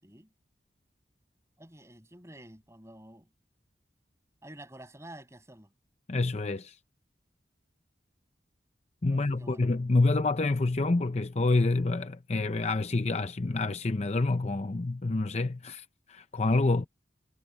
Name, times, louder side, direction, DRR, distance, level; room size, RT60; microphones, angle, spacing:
voice 1, 1.6-3.3 4.4-5.7 9.1-9.7, right 1 dB, 15° right, 7.4 m, -49 dB
voice 2, 6.1-6.7 9.0-16.9, left 2 dB, 35° left, 0.6 m, -27 dB
head